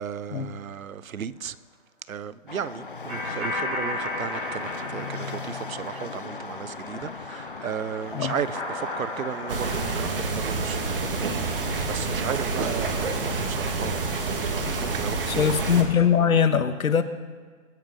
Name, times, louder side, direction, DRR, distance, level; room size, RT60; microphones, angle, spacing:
voice 1, 0.0-1.6 2.1-14.2 14.8-15.6, right 8 dB, 75° right, 0.9 m, -35 dB
sound 1, 2.5-10.0, left 4 dB, 40° left, 0.5 m, -38 dB
sound 2, 3.1-6.5 6.8-10.8, left 2 dB, 5° right, 0.7 m, -34 dB
sound 3, 9.5-15.8, right 3 dB, 40° right, 2.0 m, -28 dB
voice 2, 15.3-17.0, left 7 dB, 80° left, 1.5 m, -21 dB
23.5 x 8.7 x 5.5 m
hypercardioid pair, 175°, 42 cm